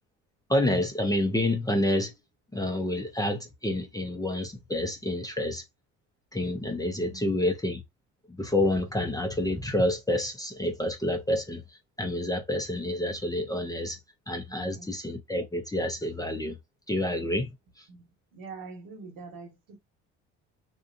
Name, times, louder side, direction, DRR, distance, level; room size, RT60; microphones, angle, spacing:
voice 1, 0.5-2.1 2.5-5.6 6.3-7.8 8.3-11.6 12.0-14.0 14.3-16.6 16.9-17.5, left 1 dB, 10° left, 0.7 m, -28 dB
voice 2, 7.0-7.4 14.6-14.9 17.9-18.0 18.3-19.8, right 4 dB, 70° right, 1.4 m, -44 dB
2.8 x 2.3 x 2.6 m
hypercardioid pair, 60°, 35 cm